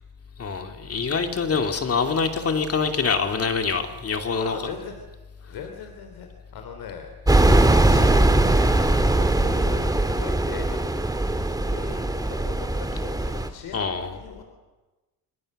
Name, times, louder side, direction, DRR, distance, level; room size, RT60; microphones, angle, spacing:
voice 1, 0.4-4.6 13.7-14.2, left 5 dB, 40° left, 6 dB, 2.6 m, -25 dB
voice 2, 4.3-5.0 5.5-7.1 7.5-10.9 11.2-14.4, left 6 dB, 80° left, 5 dB, 3.7 m, -40 dB
sound 1, 7.3-13.5, right 2 dB, 10° right, 2.0 m, -20 dB
28.0 x 25.5 x 6.6 m, 1.1 s
cardioid pair, 120°, 37 cm